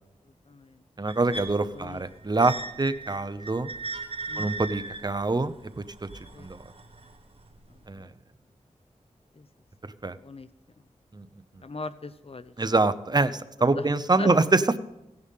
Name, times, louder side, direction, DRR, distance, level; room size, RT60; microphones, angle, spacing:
voice 1, 0.2-0.8 1.7-2.3 4.3-4.6 6.3-6.5 7.7-8.1 9.3-9.5 10.2-10.5 11.6-12.5 13.6-13.9 14.2-14.3, left 3 dB, 50° left, 13 dB, 0.6 m, -40 dB
voice 2, 1.0-3.7 4.4-6.6 7.9-8.1 10.0-10.2 11.1-11.3 12.6-14.8, right 3 dB, 30° right, 12 dB, 0.8 m, -25 dB
sound 1, 1.1-7.1 7.9-8.0, right 3 dB, 50° right, 1.6 m, -38 dB
17.0 x 10.5 x 3.7 m, 0.90 s
wide cardioid pair, 85°, 13 cm